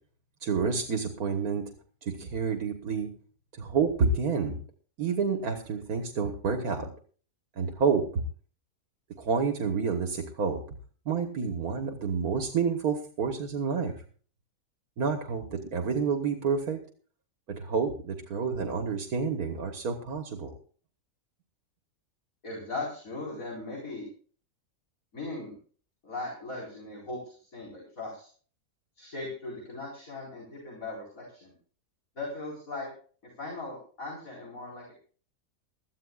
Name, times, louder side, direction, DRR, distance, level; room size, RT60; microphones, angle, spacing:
voice 1, 0.4-1.6 2.0-3.1 3.6-4.6 5.0-6.9 7.6-8.2 9.2-10.6 11.1-13.9 15.0-16.8 17.5-20.5, right 5 dB, 80° right, 5 dB, 1.9 m, -29 dB
voice 2, 22.4-24.1 25.1-25.5 26.0-28.3 29.0-31.5 32.1-32.9 33.4-34.9, left 2 dB, 65° left, -3 dB, 5.2 m, -38 dB
21.0 x 14.0 x 2.4 m, 0.42 s
omnidirectional pair, 1.5 m